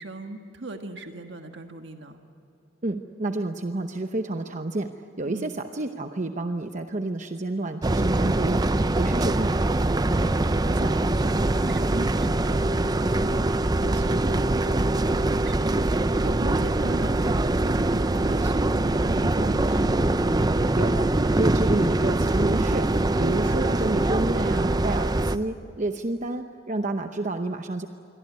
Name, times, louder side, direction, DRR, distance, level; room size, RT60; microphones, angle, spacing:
voice 1, 0.0-2.2 5.2-5.6 9.8-20.2, right 2 dB, 65° right, 5 dB, 1.5 m, -39 dB
voice 2, 2.8-9.6 20.7-22.9 23.2-27.9, right 2 dB, 40° right, 6 dB, 0.9 m, -29 dB
sound 1, 7.8-25.4, right 2 dB, 20° right, 0.5 m, -23 dB
27.0 x 23.0 x 9.4 m, 2.9 s
head